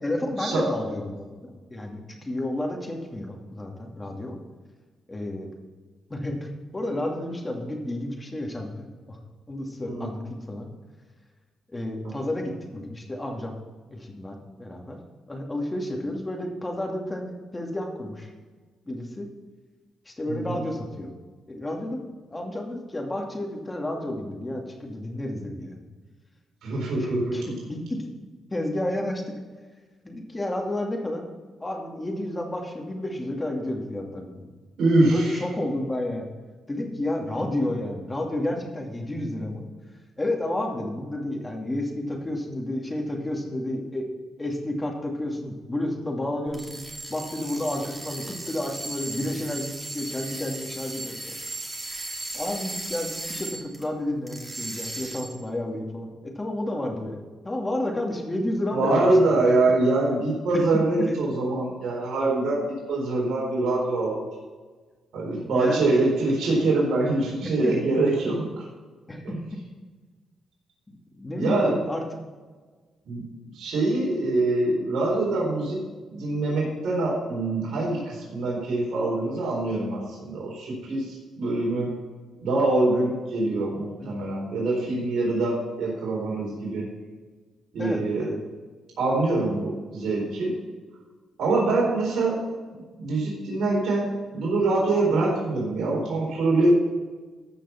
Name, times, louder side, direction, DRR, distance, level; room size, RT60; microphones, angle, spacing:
voice 1, 0.0-4.4 5.1-5.5 6.1-9.2 9.5-10.7 11.7-13.6 13.9-15.0 15.3-18.3 18.9-19.3 20.1-21.2 21.5-22.0 22.3-25.8 27.0-28.1 28.5-29.3 30.0-31.2 31.6-34.5 35.1-36.3 36.7-39.7 40.2-44.1 44.4-46.8 47.1-51.4 52.3-59.5 60.5-60.7 61.0-61.1 65.5-65.9 67.4-67.8 69.1-69.4 70.9-72.0 84.0-84.1 87.8-88.4, left 1 dB, 20° left, 1 dB, 2.5 m, -31 dB
voice 2, 26.6-27.5 34.8-35.4 58.7-64.2 65.1-68.6 69.2-69.3 71.4-71.8 73.1-73.3 73.5-75.8 76.1-81.9 82.4-86.9 87.7-88.3 89.0-90.5 91.4-92.4 93.0-96.8, right 2 dB, 70° right, -4 dB, 4.3 m, -24 dB
sound 1, 46.5-53.9 54.3-55.4, right 2 dB, 20° right, 2.6 m, -36 dB
14.5 x 5.9 x 5.8 m, 1.4 s
cardioid pair, 80°, 0 cm